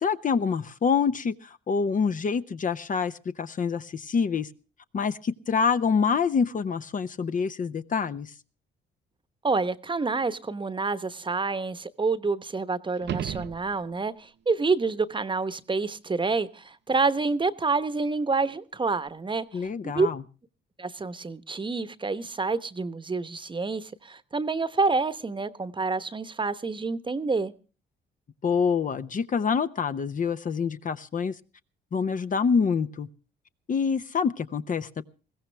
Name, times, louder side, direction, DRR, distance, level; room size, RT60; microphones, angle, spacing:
voice 1, 0.0-4.5 4.9-8.3 19.5-20.2 28.4-31.3 31.9-33.1 33.7-35.0, left 6 dB, 40° left, 0.8 m, -26 dB
voice 2, 9.4-19.5 19.9-20.1 20.8-27.5, right 4 dB, 25° right, 1.0 m, -28 dB
sound 1, 13.0-14.2 19.1-19.2, right 10 dB, 65° right, 0.7 m, -35 dB
21.0 x 16.0 x 3.4 m
cardioid pair, 90°, 20 cm